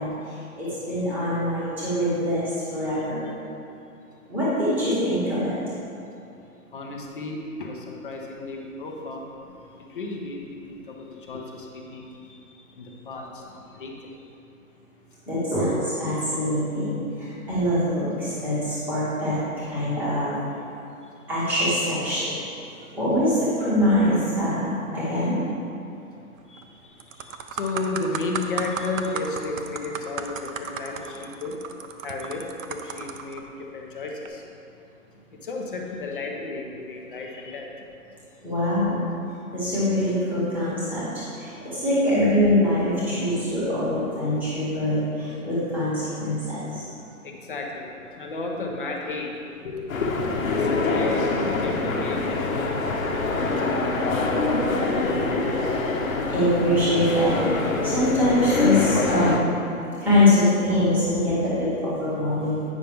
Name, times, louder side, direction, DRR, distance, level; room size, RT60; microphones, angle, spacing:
voice 1, 0.0-3.2 4.3-5.5 15.3-20.4 21.3-22.4 22.9-25.4 38.4-39.0 39.5-46.8 56.3-59.5 60.0-62.7, left 1 dB, 5° right, -11 dB, 1.0 m, -23 dB
voice 2, 6.7-9.5 9.8-14.2 21.0-21.2 26.5-31.6 32.0-34.4 35.3-37.9 44.3-44.5 46.6-47.0 47.2-51.3 51.6-55.7 59.9-60.3 62.6-62.7, left 3 dB, 35° left, 0 dB, 0.7 m, -34 dB
sound 1, 26.4-26.6 27.0-33.4 34.1-34.3, right 6 dB, 65° right, 0.7 m, -34 dB
sound 2, 49.9-59.4, left 3 dB, 65° left, 1.2 m, -25 dB
9.1 x 5.7 x 3.5 m, 2.7 s
hypercardioid pair, 170°, 43 cm